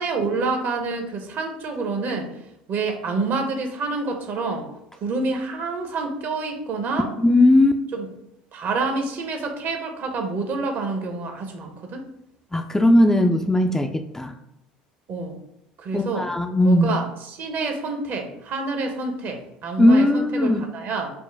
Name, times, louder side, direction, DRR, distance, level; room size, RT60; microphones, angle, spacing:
voice 1, 0.0-2.3 2.7-4.7 5.0-7.1 7.9-8.1 8.5-12.0 15.1-15.4 15.8-16.3 16.6-21.1, right 3 dB, 50° right, 4 dB, 0.7 m, -27 dB
voice 2, 7.2-7.8 12.5-14.3 15.9-17.0 19.8-20.7, left 1 dB, 10° left, 5 dB, 0.3 m, -18 dB
4.3 x 2.1 x 3.3 m, 0.83 s
hypercardioid pair, 65°, 4 cm